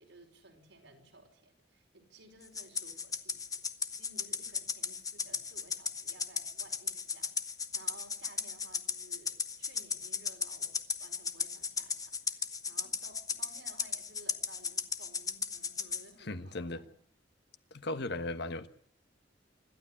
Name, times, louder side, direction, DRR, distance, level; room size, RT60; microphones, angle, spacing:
voice 1, 0.0-3.6 4.0-16.9, right 2 dB, 85° right, 5.3 m, -57 dB
Rattle (instrument), 2.6-16.1, left 5 dB, 20° left, 1.0 m, -36 dB
voice 2, 16.2-16.8 17.7-18.7, left 2 dB, 65° left, 1.4 m, -37 dB
26.5 x 12.5 x 9.9 m
head